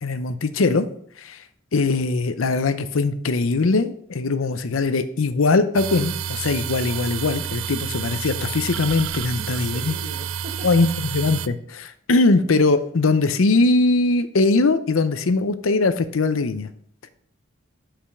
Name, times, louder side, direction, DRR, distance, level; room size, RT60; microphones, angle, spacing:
voice 1, 0.0-0.9 1.2-1.4 1.7-10.0 10.6-16.7, left 3 dB, 90° left, 11 dB, 0.6 m, -21 dB
sound 1, 5.7-11.5, right 8 dB, 85° right, 0.4 m, -30 dB
voice 2, 9.2-10.9, right 2 dB, 45° right, 3 dB, 1.3 m, -40 dB
5.7 x 5.0 x 6.4 m, 0.63 s
head